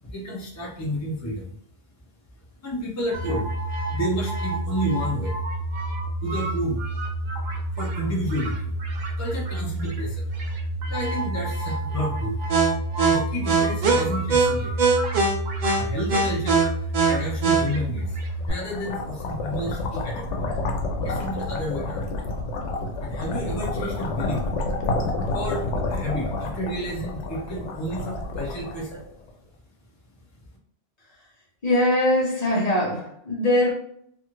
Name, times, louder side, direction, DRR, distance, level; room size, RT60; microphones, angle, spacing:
voice 1, 0.1-1.5 2.6-3.5 3.9-5.3 6.2-6.8 7.8-8.7 9.2-10.3 10.9-12.4 13.1-14.9 15.8-18.2 18.5-20.5 21.0-22.1 23.0-24.5 25.3-29.0, equal, 20° left, -4 dB, 0.5 m, -31 dB
sound 1, 3.1-18.5, right 3 dB, 55° right, 0.5 m, -25 dB
sound 2, 18.1-29.3, left 2 dB, 85° left, 0.9 m, -29 dB
voice 2, 31.6-33.7, left 1 dB, 40° left, -3 dB, 0.8 m, -21 dB
2.6 x 2.4 x 2.9 m, 0.69 s
omnidirectional pair, 1.2 m